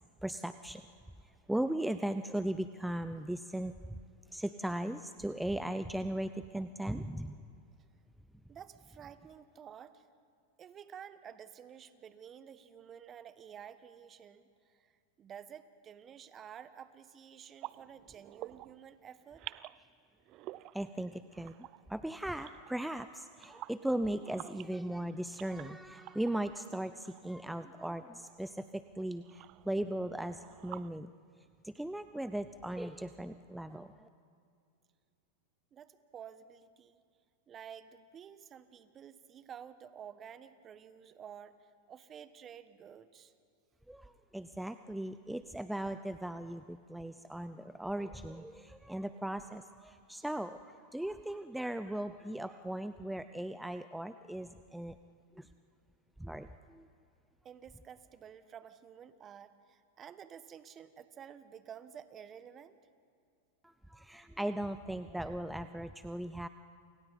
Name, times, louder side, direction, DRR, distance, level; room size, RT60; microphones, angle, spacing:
voice 1, 0.2-0.8 1.2-4.0 4.3-7.4 20.7-31.1 31.6-34.1 43.9-55.0 55.4-55.5 56.2-56.9 63.6-66.5, right 1 dB, 5° right, 11 dB, 0.6 m, -38 dB
voice 2, 8.5-10.1 10.6-14.9 15.2-19.4 35.7-37.0 37.5-43.3 57.4-62.8, right 8 dB, 30° right, 13 dB, 1.2 m, -51 dB
sound 1, 17.6-18.9 19.2-19.8 20.2-23.0 23.3-28.2 28.8-30.9, right 16 dB, 45° right, 0.5 m, -51 dB
29.5 x 28.0 x 4.1 m, 2.4 s
hypercardioid pair, 100°, 0 cm